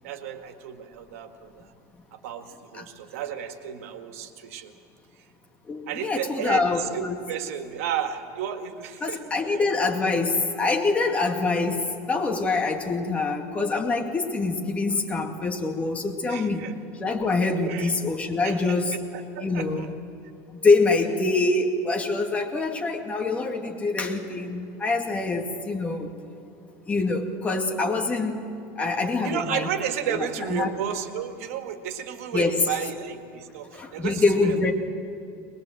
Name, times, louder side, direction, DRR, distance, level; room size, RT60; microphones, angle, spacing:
voice 1, 0.0-1.7 2.1-4.7 5.9-9.6 16.3-16.7 17.6-17.9 18.4-18.8 19.1-19.9 29.2-34.7, right 9 dB, 90° right, 6 dB, 2.0 m, -33 dB
voice 2, 5.7-7.2 9.0-16.7 17.0-18.9 19.4-19.9 20.5-26.1 26.9-28.4 28.8-29.7 30.1-30.7 32.3-32.7 33.7-34.7, left 3 dB, 20° left, 3 dB, 2.2 m, -25 dB
22.0 x 22.0 x 7.8 m, 2.7 s
supercardioid pair, 145°, 7 cm